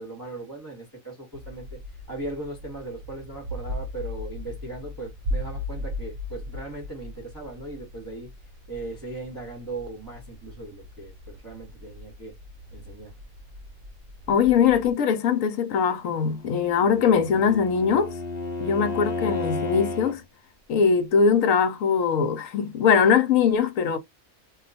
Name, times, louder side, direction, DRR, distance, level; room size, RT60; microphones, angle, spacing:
voice 1, 0.0-1.8 2.1-8.3 8.7-12.3 12.7-13.1, right 2 dB, 15° right, 1.0 m, -38 dB
sound 1, 1.3-14.9, left 1 dB, 65° right, 0.5 m, -38 dB
voice 2, 14.3-18.1 18.6-20.2 20.7-24.0, left 6 dB, 70° left, 1.0 m, -21 dB
Bowed string instrument, 16.5-20.2, left 3 dB, 35° left, 0.8 m, -32 dB
2.4 x 2.3 x 4.0 m
omnidirectional pair, 1.5 m